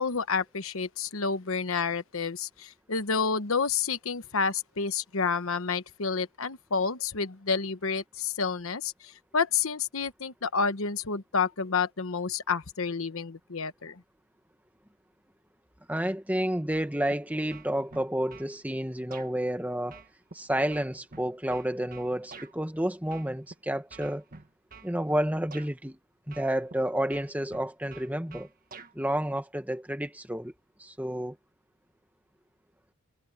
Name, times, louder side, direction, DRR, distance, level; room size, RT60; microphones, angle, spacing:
voice 1, 0.0-14.0, left 5 dB, 75° left, 1.1 m, -29 dB
voice 2, 15.9-20.0 20.3-24.2 24.8-26.0 26.3-28.5 28.9-30.5 30.8-31.4, right 1 dB, 5° right, 1.5 m, -30 dB
sound 1, 16.7-17.2 17.5-18.5 19.1-19.3 19.9-22.5 23.1-23.5 23.9-24.9 25.5-25.7 26.3-26.8 27.1-28.9, right 4 dB, 40° right, 1.6 m, -48 dB
head